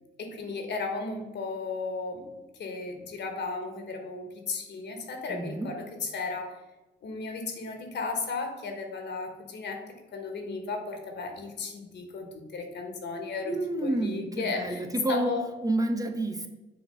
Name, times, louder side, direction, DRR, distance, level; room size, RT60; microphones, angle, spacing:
voice 1, 0.2-2.3 2.6-6.6 7.0-13.5 13.8-14.8 15.1-15.4, left 4 dB, 60° left, 4 dB, 1.4 m, -35 dB
voice 2, 5.3-5.7 13.4-15.3 15.6-16.5, right 2 dB, 15° right, 5 dB, 0.7 m, -29 dB
7.0 x 3.0 x 5.5 m, 1.1 s
cardioid pair, 90°, 20 cm